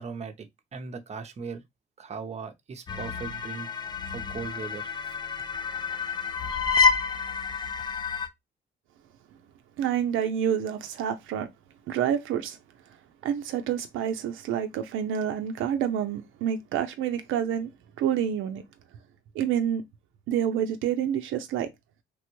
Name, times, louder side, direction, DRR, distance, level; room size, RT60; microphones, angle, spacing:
voice 1, 0.0-1.6 2.0-3.7 4.0-4.9, right 5 dB, 35° right, 0.6 m, -38 dB
sound 1, 2.9-8.3, left 5 dB, 20° left, 0.4 m, -28 dB
voice 2, 9.8-11.5 11.9-12.6 13.2-17.7 18.0-18.6 19.3-19.8 20.3-21.7, right 9 dB, 80° right, 0.5 m, -28 dB
3.3 x 2.1 x 3.0 m
cardioid pair, 90°, 20 cm